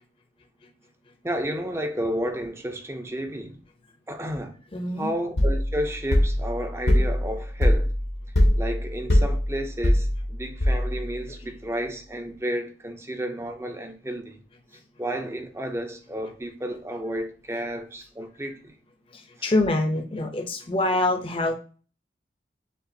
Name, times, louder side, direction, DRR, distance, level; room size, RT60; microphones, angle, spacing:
voice 1, 1.2-3.6 4.1-4.5 5.0-7.9 8.6-14.4 15.0-18.7 19.4-19.5, equal, 15° right, 0.5 m, -31 dB
voice 2, 4.7-5.1 11.4-11.5 19.1-21.5, left 2 dB, 30° left, 0.6 m, -25 dB
sound 1, 5.4-11.2, left 1 dB, 65° left, 0.9 m, -22 dB
6.6 x 2.5 x 2.6 m
head